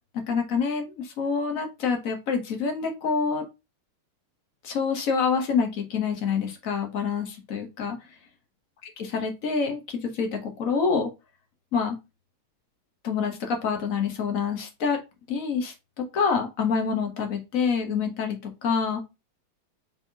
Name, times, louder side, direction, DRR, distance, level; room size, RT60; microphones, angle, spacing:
voice 1, 0.1-3.4 4.6-8.0 9.1-11.1 11.7-12.0 13.0-15.0 15.3-15.7 16.1-18.4 18.6-19.0, left 5 dB, 50° left, 4 dB, 1.2 m, -26 dB
5.6 x 3.4 x 2.7 m, 0.25 s
omnidirectional pair, 2.3 m